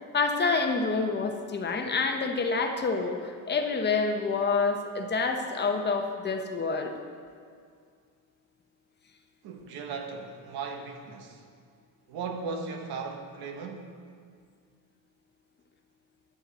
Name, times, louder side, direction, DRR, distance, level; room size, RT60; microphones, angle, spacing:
voice 1, 0.1-6.9, left 4 dB, 30° left, 0.8 m, -27 dB
voice 2, 9.4-11.4 12.1-14.0, right 4 dB, 80° right, 1.4 m, -37 dB
11.0 x 10.5 x 4.1 m
cardioid pair, 160°, 37 cm